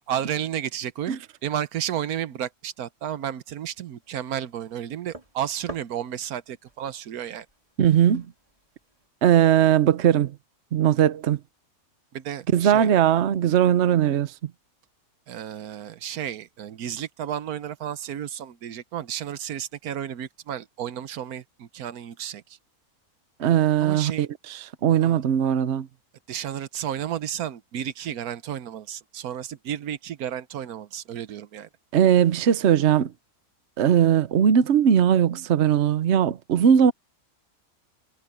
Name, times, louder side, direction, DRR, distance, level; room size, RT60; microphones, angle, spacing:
voice 1, 0.1-1.1 1.4-7.5 12.1-12.9 15.3-22.6 23.8-24.3 25.0-25.2 26.3-31.7, right 10 dB, 90° right, 1.3 m, -32 dB
sound 1, 4.0-9.1, right 1 dB, 25° right, 2.9 m, -48 dB
voice 2, 7.8-8.3 9.2-10.3 10.7-11.4 12.5-14.3 23.4-25.9 31.9-33.1 33.8-36.9, right 9 dB, 55° right, 1.0 m, -19 dB
omnidirectional pair, 1.5 m